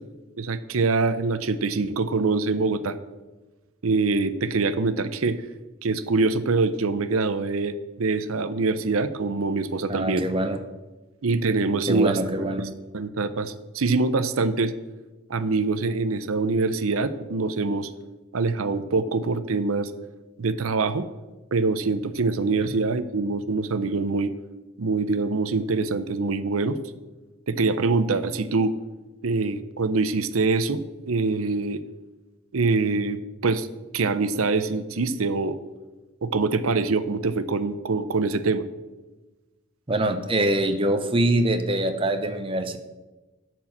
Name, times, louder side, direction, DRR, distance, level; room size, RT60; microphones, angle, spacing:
voice 1, 0.4-3.0 3.8-5.4 5.8-10.3 11.2-12.2 12.6-12.7 12.9-14.7 15.3-17.9 18.3-19.9 20.4-21.1 21.5-24.3 24.8-26.8 27.5-28.7 29.2-30.8 31.1-31.8 32.5-33.7 33.9-35.6 36.2-38.7, right 3 dB, 80° right, 13 dB, 0.7 m, -24 dB
voice 2, 9.9-10.6 11.9-12.7 22.6-22.7 39.9-42.8, right 1 dB, 25° right, 7 dB, 0.8 m, -24 dB
11.5 x 4.6 x 7.2 m, 1.2 s
head